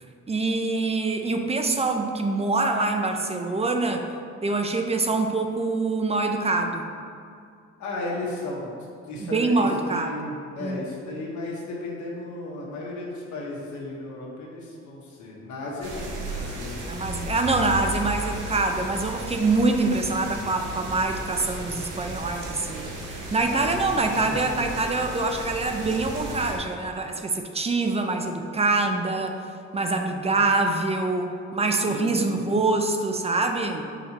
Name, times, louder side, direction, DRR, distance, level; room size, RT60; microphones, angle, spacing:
voice 1, 0.3-4.1 4.4-6.8 9.2-10.1 10.6-10.8 16.9-29.4 29.7-33.9, right 3 dB, 20° right, 5 dB, 0.5 m, -25 dB
voice 2, 7.8-8.7 9.1-17.6 18.3-18.4 23.4-24.2 24.5-24.9 31.9-32.4, left 2 dB, 75° left, -4 dB, 1.3 m, -35 dB
sound 1, 15.8-26.6, right 1 dB, 85° right, 1.1 m, -35 dB
6.4 x 4.9 x 2.9 m, 2.3 s
cardioid pair, 90°, 30 cm